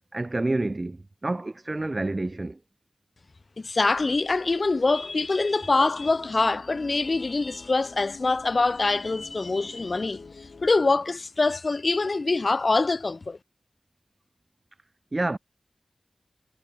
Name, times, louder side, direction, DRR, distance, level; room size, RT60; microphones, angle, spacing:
voice 1, 0.1-2.6 15.1-15.4, right 2 dB, 40° right, 0.5 m, -28 dB
voice 2, 3.6-13.4, left 3 dB, 55° left, 0.6 m, -24 dB
sound 1, 3.9-10.7, left 4 dB, 75° left, 1.9 m, -47 dB
cardioid pair, 40°, 0 cm